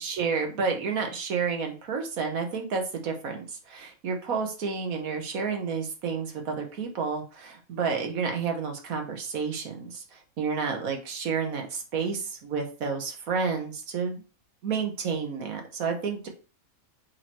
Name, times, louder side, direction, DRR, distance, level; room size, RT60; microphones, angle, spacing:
voice 1, 0.0-14.2 14.6-16.3, right 5 dB, 75° right, 4 dB, 1.7 m, -30 dB
4.8 x 4.5 x 4.5 m, 0.35 s
omnidirectional pair, 1.5 m